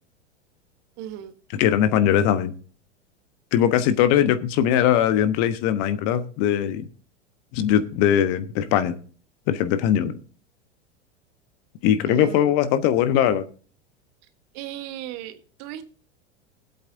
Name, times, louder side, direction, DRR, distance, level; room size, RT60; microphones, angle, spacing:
voice 1, 1.0-1.3 12.0-12.6 14.5-15.8, right 12 dB, 45° right, 1.4 m, -36 dB
voice 2, 1.5-2.5 3.5-6.9 7.5-8.9 9.5-10.2 11.8-13.5, left 10 dB, 45° left, 1.2 m, -20 dB
21.0 x 8.2 x 2.7 m
hypercardioid pair, 95°, 36 cm